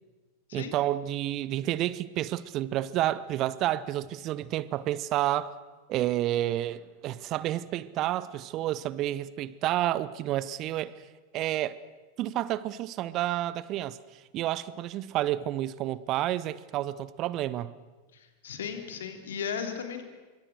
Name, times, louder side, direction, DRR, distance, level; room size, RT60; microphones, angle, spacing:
voice 1, 0.5-5.5 5.9-11.0 11.3-11.8 12.2-14.0 14.3-17.7, right 14 dB, 35° right, 0.8 m, -30 dB
voice 2, 18.1-20.0, left 7 dB, 60° left, 3.2 m, -36 dB
26.0 x 24.0 x 6.4 m
figure-of-eight pair, 90°, 0 cm